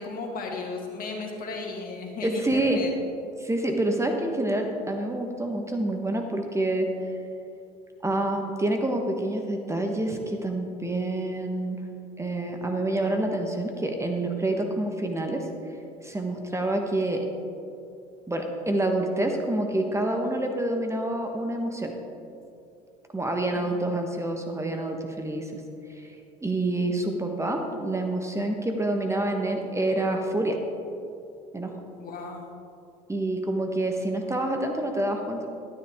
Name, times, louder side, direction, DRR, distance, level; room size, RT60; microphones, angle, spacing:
voice 1, 0.0-2.9 23.5-23.8 32.0-32.6, left 3 dB, 45° left, 1 dB, 2.2 m, -35 dB
voice 2, 2.2-2.8 3.4-6.9 8.0-11.8 12.2-15.5 16.0-17.2 18.3-21.9 23.1-25.6 25.9-26.1 26.4-30.6 31.5-31.8 33.1-35.5, right 1 dB, 15° right, 3 dB, 1.3 m, -27 dB
12.5 x 9.9 x 3.7 m, 2.5 s
hypercardioid pair, 70°, 20 cm